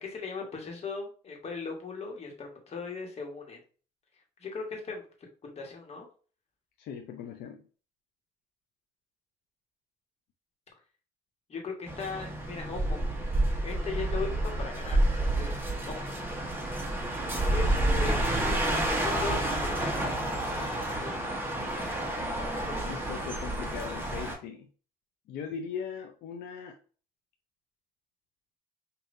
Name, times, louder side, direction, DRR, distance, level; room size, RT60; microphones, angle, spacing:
voice 1, 0.0-3.6 4.4-5.0 5.4-6.1 11.5-13.0 13.6-15.6 15.9-16.1 17.5-22.1 22.4-23.1, left 4 dB, 40° left, 1 dB, 1.5 m, -39 dB
voice 2, 6.8-7.6 22.6-24.7 25.3-26.8, left 7 dB, 70° left, 4 dB, 0.6 m, -39 dB
sound 1, 11.9-24.3, right 1 dB, 15° right, 1.1 m, -29 dB
5.3 x 2.7 x 2.6 m, 0.38 s
cardioid pair, 110°, 17 cm